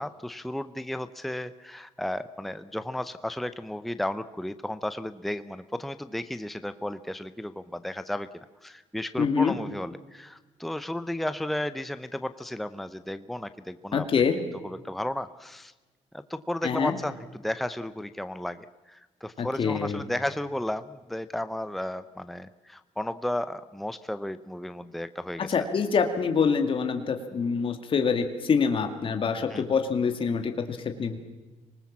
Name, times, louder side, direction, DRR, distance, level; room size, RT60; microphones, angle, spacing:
voice 1, 0.0-8.3 8.6-14.1 14.6-15.7 16.1-25.5 29.5-29.6, left 1 dB, ahead, 12 dB, 0.7 m, -33 dB
voice 2, 9.2-9.5 13.9-14.4 16.6-16.9 19.4-20.0 25.5-31.2, left 5 dB, 45° left, 6 dB, 2.1 m, -25 dB
25.5 x 19.5 x 7.3 m, 1.2 s
cardioid pair, 125°, 13 cm